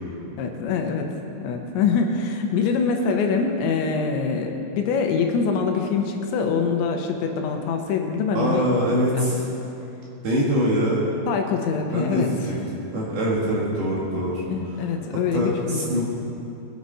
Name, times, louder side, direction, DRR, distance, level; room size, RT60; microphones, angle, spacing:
voice 1, 0.4-9.3 11.3-12.3 14.5-15.9, left 5 dB, 80° left, 3 dB, 3.2 m, -24 dB
voice 2, 8.3-9.4 10.2-11.1 11.9-12.6 12.9-14.4 15.3-16.0, equal, 55° right, -5 dB, 2.9 m, -23 dB
22.0 x 9.6 x 4.2 m, 2.9 s
omnidirectional pair, 5.5 m